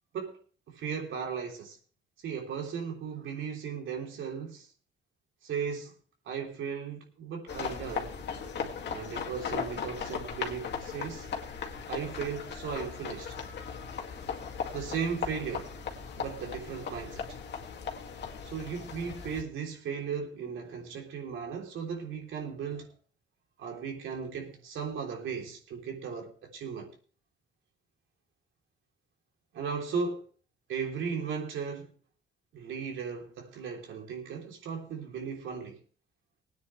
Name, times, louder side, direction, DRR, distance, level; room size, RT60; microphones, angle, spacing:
voice 1, 0.7-1.8 2.2-4.7 5.4-5.9 6.2-8.2 8.9-11.3 11.9-13.3 14.7-15.7 16.2-17.4 18.4-22.9 23.6-26.9 29.5-30.2 30.7-31.9 32.5-35.8, right 6 dB, 75° right, 3.4 m, -36 dB
sound 1, 7.5-19.4, left 6 dB, 60° left, 2.1 m, -38 dB
20.0 x 9.5 x 3.2 m
cardioid pair, 90°, 20 cm